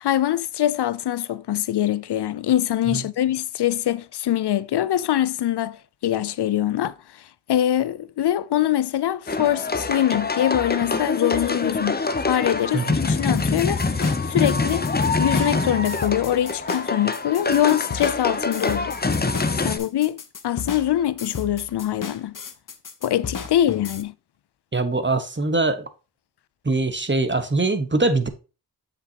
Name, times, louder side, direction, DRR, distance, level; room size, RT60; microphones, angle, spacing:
voice 1, 0.0-14.9 15.2-19.0 19.6-22.4 23.0-24.1, left 12 dB, 75° left, 0.6 m, -23 dB
sound 1, 9.3-19.8, left 3 dB, 25° left, 0.8 m, -25 dB
sound 2, 13.3-24.0, left 6 dB, 50° left, 1.0 m, -35 dB
voice 2, 24.7-25.9 26.6-28.3, right 3 dB, 25° right, 1.3 m, -22 dB
7.3 x 6.1 x 2.9 m
cardioid pair, 40°, 40 cm